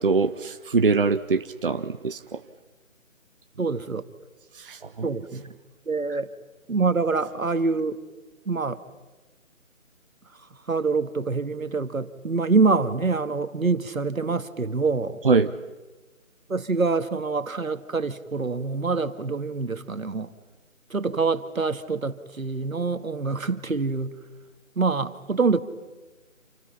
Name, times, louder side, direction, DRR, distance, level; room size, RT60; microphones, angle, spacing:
voice 1, 0.0-2.4 4.6-5.0 15.2-15.5, right 4 dB, 40° right, 9 dB, 0.9 m, -23 dB
voice 2, 3.6-4.0 5.0-5.5 5.9-6.3 6.7-8.0 8.5-8.8 10.7-15.2 16.5-20.3 20.9-24.1 24.8-25.6, right 4 dB, 85° right, 10 dB, 1.9 m, -25 dB
29.5 x 28.0 x 5.8 m, 1.2 s
figure-of-eight pair, 165°, 40 cm